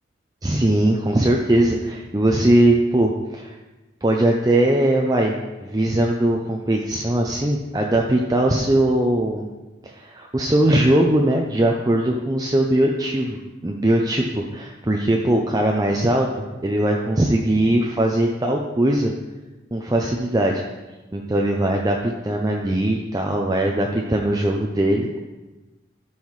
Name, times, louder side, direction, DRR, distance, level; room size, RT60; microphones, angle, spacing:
voice 1, 0.4-3.5 4.0-5.3 5.6-9.5 9.8-19.1 19.7-20.6 21.1-25.2, right 1 dB, 20° right, 0 dB, 0.5 m, -20 dB
13.0 x 5.6 x 3.2 m, 1.1 s
head